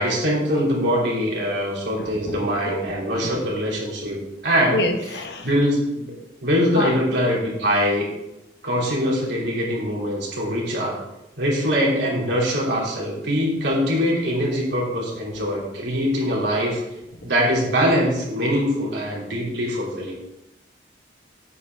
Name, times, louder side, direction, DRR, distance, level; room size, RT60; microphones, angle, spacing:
voice 1, 0.0-4.2 4.4-4.8 5.4-6.1 6.4-8.1 8.6-10.9 11.4-16.8 17.2-20.3, equal, 75° right, -4 dB, 2.9 m, -23 dB
voice 2, 2.0-2.4 2.6-2.7 3.2-3.4 4.7-5.5 6.7-6.9 17.2-17.3, left 2 dB, 65° left, 4 dB, 1.1 m, -27 dB
8.4 x 5.6 x 4.5 m, 0.92 s
head